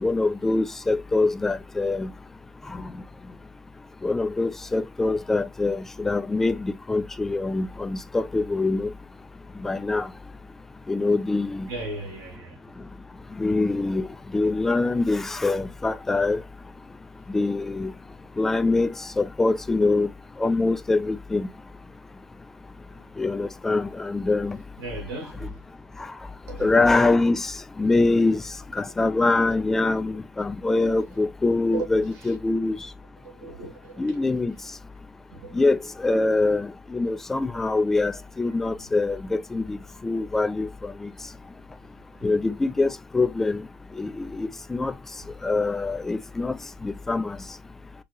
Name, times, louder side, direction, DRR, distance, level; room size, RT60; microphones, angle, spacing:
voice 1, 0.0-2.1 2.7-2.9 4.0-8.9 9.6-10.1 10.9-11.7 13.4-14.1 14.3-16.4 17.3-17.9 18.4-20.1 20.4-21.5 23.2-24.6 26.6-28.4 28.7-32.8 34.0-34.5 35.5-39.8 40.0-40.7 41.0-41.1 42.2-43.6 44.0-44.9 45.4-46.6 46.8-47.4, left 3 dB, 10° left, 0.4 m, -24 dB
voice 2, 11.7-12.6 24.8-25.6 26.5-26.7 31.7-31.9 33.2-34.4 35.3-35.6, right 3 dB, 70° right, 2.1 m, -36 dB
6.1 x 2.9 x 2.3 m
supercardioid pair, 125°, 3 cm